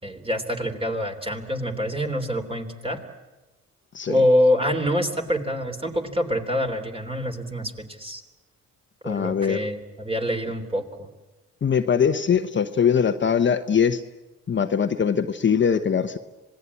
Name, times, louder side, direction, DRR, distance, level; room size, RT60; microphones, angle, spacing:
voice 1, 0.0-3.0 4.1-8.2 9.0-11.1, equal, 20° right, 5 dB, 3.4 m, -25 dB
voice 2, 9.0-9.6 11.6-14.0 14.5-16.2, left 7 dB, 40° left, 7 dB, 1.0 m, -22 dB
26.5 x 19.0 x 8.5 m, 1.1 s
cardioid pair, 90°, 30 cm